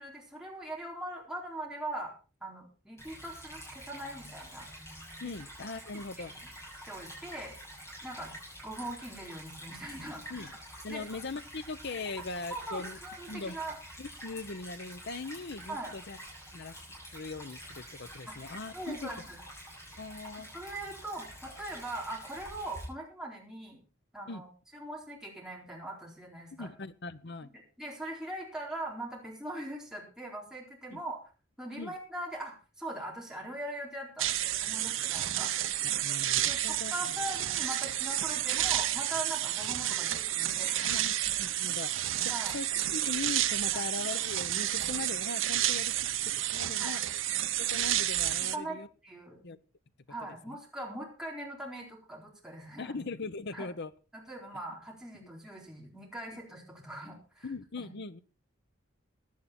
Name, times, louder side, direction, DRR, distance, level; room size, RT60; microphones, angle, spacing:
voice 1, 0.0-2.1 2.4-4.7 5.2-5.3 6.2-6.4 6.9-7.5 8.0-8.4 8.6-10.5 10.9-11.0 12.2-12.3 12.5-13.8 15.7-15.9 18.3-18.4 18.7-19.4 20.3-23.8 24.1-24.5 24.7-26.7 27.4-27.5 27.8-31.2 31.6-35.5 36.4-41.0 42.3-42.6 43.7-43.9 46.8-47.0 48.4-49.4 50.1-53.0 53.5-53.7 54.1-57.5 57.8-57.9, right 1 dB, 5° right, -2 dB, 4.2 m, -41 dB
Stream / Trickle dribble, 3.0-22.8, equal, 15° left, 7.2 m, -48 dB
voice 2, 5.2-6.3 10.3-10.5 10.8-13.0 13.3-13.6 14.0-16.2 16.5-16.7 17.1-19.1 20.0-20.5 24.3-24.4 26.5-27.5 30.9-31.0 31.8-31.9 36.0-37.2 40.8-41.9 42.2-47.0 47.6-48.9 49.4-49.6 50.5-50.6 52.8-53.9 55.2-55.3 57.4-58.2, left 3 dB, 55° left, 13 dB, 0.8 m, -40 dB
sound 1, 34.2-48.6, right 12 dB, 70° right, 0.8 m, -30 dB
16.0 x 10.5 x 4.3 m, 0.35 s
head